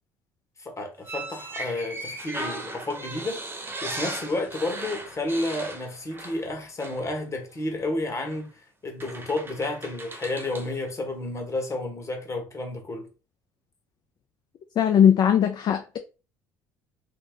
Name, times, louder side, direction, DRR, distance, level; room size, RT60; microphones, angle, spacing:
voice 1, 0.6-3.4 3.8-13.1, left 2 dB, 30° left, 1.3 m, -31 dB
sound 1, 1.0-6.5 6.8-7.0 8.3-8.4 9.0-10.7, right 2 dB, 20° right, 0.8 m, -37 dB
voice 2, 14.8-16.0, left 9 dB, 45° left, 0.4 m, -19 dB
3.0 x 2.1 x 3.7 m
hypercardioid pair, 65°, 10 cm